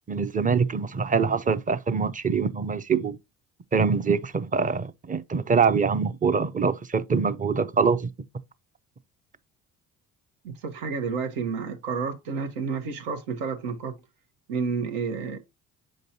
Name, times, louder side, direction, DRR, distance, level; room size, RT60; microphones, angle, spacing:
voice 1, 0.1-3.2 3.7-8.1, right 5 dB, 20° right, 0.6 m, -24 dB
voice 2, 10.6-14.0 14.5-15.4, right 5 dB, 75° right, 1.1 m, -30 dB
7.6 x 5.2 x 2.8 m
hypercardioid pair, 50°, 44 cm